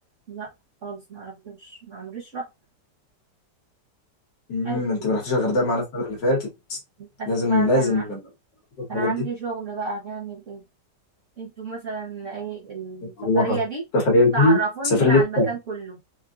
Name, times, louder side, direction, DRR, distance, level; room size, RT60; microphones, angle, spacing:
voice 1, 0.8-2.4 4.6-4.8 7.0-8.1 8.9-10.6 11.4-13.8 14.3-16.0, right 4 dB, 50° right, 1.3 m, -31 dB
voice 2, 4.5-6.8 7.3-8.2 8.8-9.1 13.2-13.6 13.9-14.6 15.0-15.5, left 2 dB, 85° left, 2.1 m, -21 dB
4.7 x 2.7 x 2.4 m
omnidirectional pair, 1.9 m